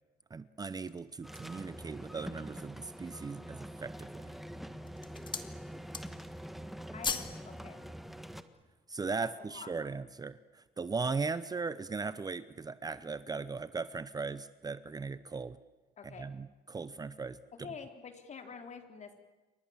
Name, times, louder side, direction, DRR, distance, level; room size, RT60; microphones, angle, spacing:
voice 1, 0.3-4.3 8.9-15.6 16.0-17.4, right 4 dB, 20° right, 15 dB, 0.8 m, -38 dB
sound 1, 0.7-1.7 2.3-2.4 2.8-3.4 4.1-4.4 4.8-5.5 5.8-6.3 6.6-7.4 7.7-7.9, left 5 dB, 30° left, 2.3 m, -39 dB
sound 2, 1.2-8.4, equal, ahead, 1.6 m, -45 dB
voice 2, 6.9-7.8 9.2-9.7 16.0-16.4 17.6-19.2, left 6 dB, 45° left, 5 dB, 4.0 m, -47 dB
29.0 x 24.5 x 7.4 m, 1.2 s
cardioid pair, 110°, 17 cm